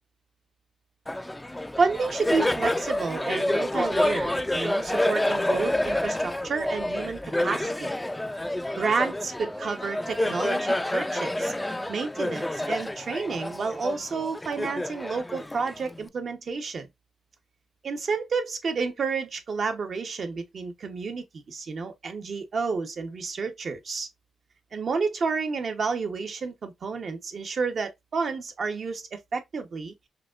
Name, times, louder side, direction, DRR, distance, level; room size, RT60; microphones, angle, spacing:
Laughter, 1.1-16.1, left 1 dB, 15° left, 0.4 m, -28 dB
voice 1, 1.8-7.9 8.7-16.9 17.8-24.1 24.7-29.9, right 4 dB, 60° right, 0.9 m, -30 dB
4.8 x 2.8 x 2.4 m
cardioid pair, 60°, 0 cm